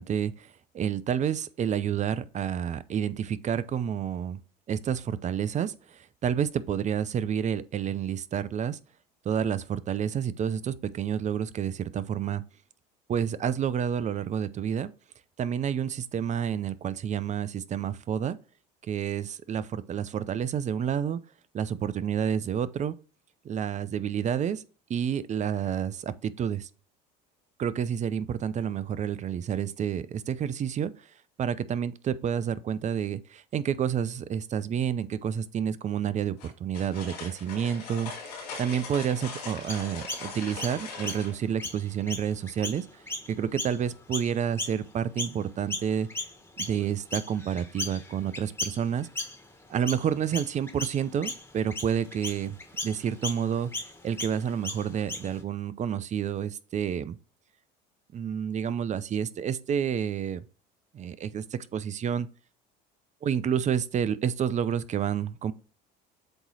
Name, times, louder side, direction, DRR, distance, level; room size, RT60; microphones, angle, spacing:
voice 1, 0.0-4.4 4.7-8.8 9.2-12.4 13.1-14.9 15.4-18.4 18.8-21.2 21.5-22.9 23.4-24.6 24.9-26.7 27.6-30.9 31.4-38.1 38.6-42.9 43.3-46.1 46.6-49.1 49.7-52.6 52.8-57.2 58.1-60.4 60.9-62.3 63.2-65.5, right 8 dB, 35° right, 0.5 m, -29 dB
sound 1, 36.4-41.3, left 4 dB, 90° left, 3.2 m, -40 dB
Chirp tweet, 39.7-45.4 45.7-55.4, left 2 dB, 10° left, 1.6 m, -37 dB
7.9 x 3.0 x 4.1 m
supercardioid pair, 85°, 21 cm